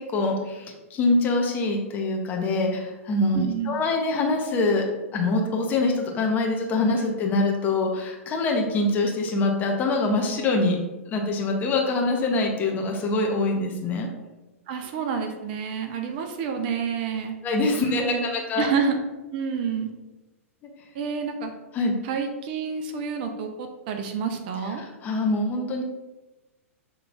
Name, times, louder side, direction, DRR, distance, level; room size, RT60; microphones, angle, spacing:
voice 1, 0.0-3.4 3.6-10.8 11.1-14.1 17.4-18.7 21.7-22.0 24.8-25.8, left 2 dB, 25° left, 1 dB, 0.7 m, -24 dB
voice 2, 3.3-3.7 14.7-17.4 17.8-19.0 19.3-19.9 20.9-21.5 22.0-24.8, right 6 dB, 40° right, 5 dB, 0.5 m, -29 dB
6.6 x 3.1 x 2.4 m, 1.1 s
figure-of-eight pair, 105°, 8 cm